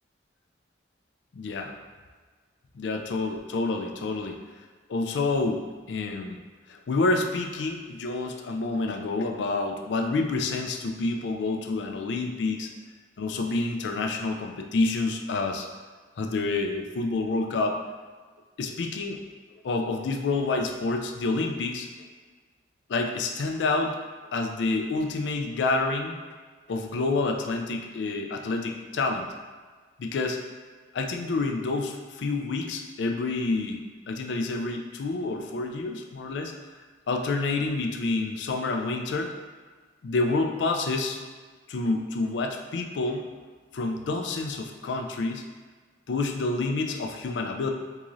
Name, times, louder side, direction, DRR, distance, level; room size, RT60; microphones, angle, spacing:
voice 1, 1.3-1.7 2.7-4.4 4.9-6.4 6.7-12.7 13.2-15.7 16.2-17.8 18.6-19.2 19.6-21.9 22.9-24.0 24.3-26.1 26.7-29.3 30.0-30.4 30.9-36.5 37.1-39.3 40.0-41.2 41.7-43.3 43.7-45.4 46.1-47.7, left 3 dB, 70° left, 3 dB, 0.4 m, -28 dB
3.6 x 2.5 x 3.0 m, 1.4 s
head